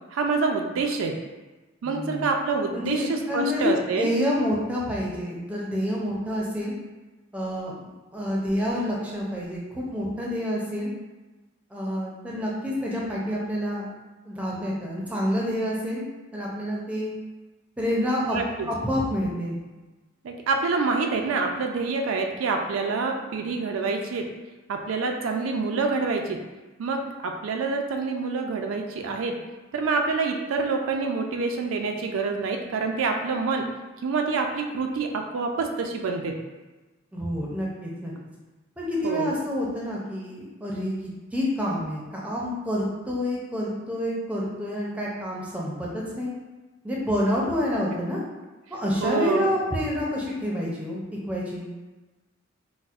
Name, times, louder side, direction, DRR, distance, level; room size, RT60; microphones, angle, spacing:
voice 1, 0.1-1.2 1.8-4.1 18.2-18.7 20.2-24.2 24.7-26.4 26.8-29.3 29.7-33.6 34.0-36.4 39.0-39.3 49.0-49.5, right 4 dB, 85° right, 3 dB, 0.4 m, -27 dB
voice 2, 1.8-2.3 2.7-6.7 7.3-7.7 8.1-10.9 11.7-13.9 14.3-17.1 17.8-18.4 18.7-19.6 37.1-38.1 38.8-40.9 41.3-46.3 46.8-48.2 48.7-51.0 51.3-51.7, left 1 dB, 5° right, -4 dB, 0.5 m, -28 dB
4.1 x 2.0 x 2.4 m, 1.2 s
head